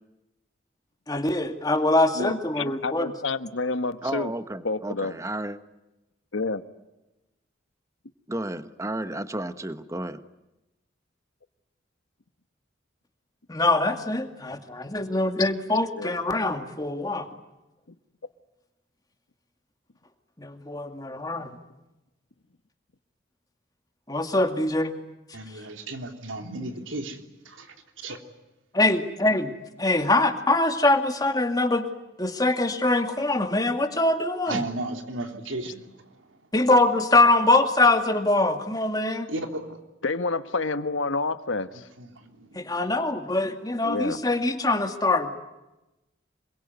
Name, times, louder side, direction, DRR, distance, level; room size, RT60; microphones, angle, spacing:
voice 1, 1.1-3.1 13.5-17.3 20.4-21.6 24.1-24.9 28.7-29.5 29.8-31.9 32.2-34.6 36.5-39.3 42.5-45.4, left 2 dB, 20° left, 2.2 m, -23 dB
voice 2, 2.2-4.3 4.6-5.2 6.3-6.6 15.9-16.1 40.0-41.9 43.8-44.2, left 3 dB, 85° left, 1.3 m, -29 dB
voice 3, 4.0-5.6 8.3-10.2, right 1 dB, 15° right, 1.1 m, -32 dB
voice 4, 25.3-28.2 34.5-36.4 39.3-39.8 41.7-42.8, right 2 dB, 90° right, 3.5 m, -35 dB
27.0 x 22.5 x 9.5 m
head